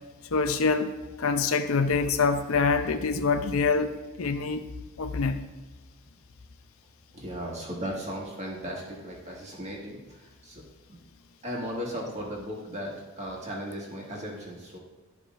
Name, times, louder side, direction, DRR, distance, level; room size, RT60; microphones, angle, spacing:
voice 1, 0.3-0.9 1.2-4.6 5.0-5.4, left 4 dB, 65° left, 8 dB, 0.6 m, -25 dB
voice 2, 7.1-10.6 10.9-11.0 11.4-14.8, equal, 30° right, -3 dB, 1.7 m, -36 dB
12.5 x 4.9 x 2.5 m, 1.2 s
head